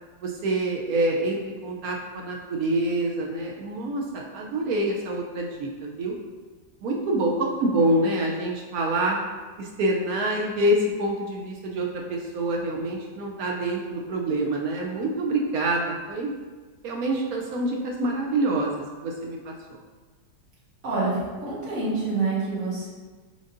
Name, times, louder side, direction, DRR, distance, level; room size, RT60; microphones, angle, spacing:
voice 1, 0.2-6.1 6.8-9.2 9.6-16.3 16.8-18.7 19.0-19.8, right 1 dB, 70° right, -1 dB, 0.8 m, -26 dB
voice 2, 20.8-22.9, right 3 dB, 50° right, -9 dB, 1.8 m, -27 dB
5.2 x 3.8 x 2.5 m, 1.4 s
omnidirectional pair, 2.0 m